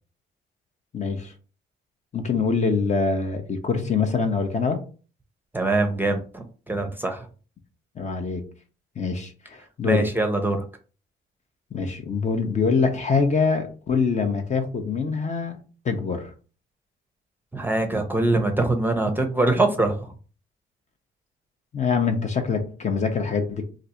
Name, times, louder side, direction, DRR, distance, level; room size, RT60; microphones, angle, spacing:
voice 1, 0.9-1.3 2.1-4.8 8.0-8.4 9.0-10.1 11.7-15.6 15.8-16.3 21.7-23.7, left 5 dB, 35° left, 6 dB, 0.6 m, -24 dB
voice 2, 5.5-7.3 9.8-10.6 17.5-20.1, right 2 dB, 10° right, 5 dB, 0.6 m, -23 dB
2.5 x 2.5 x 4.1 m, 0.37 s
cardioid pair, 90°, 20 cm